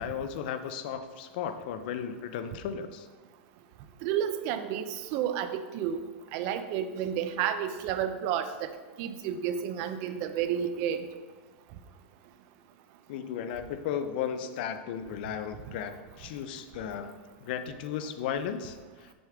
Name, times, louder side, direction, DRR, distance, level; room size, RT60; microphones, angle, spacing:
voice 1, 0.0-3.1 13.1-19.1, left 8 dB, 55° left, 9 dB, 0.6 m, -35 dB
voice 2, 4.0-6.0 6.3-8.7 9.0-11.1, right 9 dB, 40° right, 9 dB, 0.6 m, -31 dB
7.8 x 6.4 x 3.6 m, 1.4 s
supercardioid pair, 160°, 6 cm